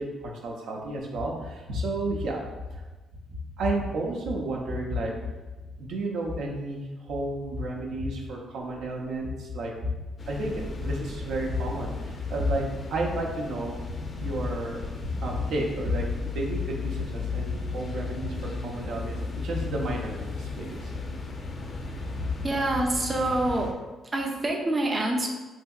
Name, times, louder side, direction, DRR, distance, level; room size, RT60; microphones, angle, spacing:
voice 1, 0.0-2.4 2.7-2.8 3.6-5.1 5.8-9.9 10.3-13.8 14.2-20.9 22.2-22.3, right 1 dB, 80° right, -1 dB, 0.5 m, -31 dB
sound 1, 10.2-23.7, left 4 dB, 40° left, 0.4 m, -35 dB
voice 2, 22.4-23.7 24.1-25.3, right 1 dB, 25° right, 0 dB, 0.4 m, -26 dB
3.3 x 2.7 x 2.3 m, 1.2 s
cardioid pair, 90°, 0 cm